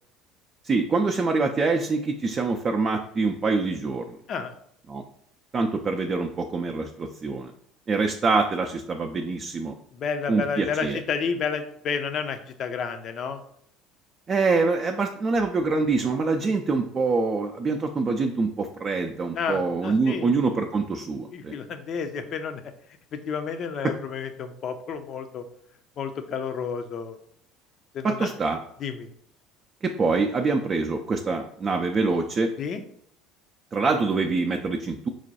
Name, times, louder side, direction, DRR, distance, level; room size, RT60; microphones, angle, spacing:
voice 1, 0.6-4.0 4.9-5.0 5.5-7.5 7.9-9.7 10.3-11.0 14.3-21.5 23.8-23.9 28.0-28.6 29.8-32.5 33.7-35.1, right 4 dB, 35° right, 4 dB, 0.4 m, -25 dB
voice 2, 9.9-13.4 19.4-20.3 21.3-22.6 23.1-25.4 26.0-27.2 27.9-28.3 28.8-29.1 32.6-32.8, left 6 dB, 45° left, 8 dB, 0.5 m, -31 dB
4.7 x 2.2 x 4.1 m, 0.68 s
figure-of-eight pair, 65°, 0 cm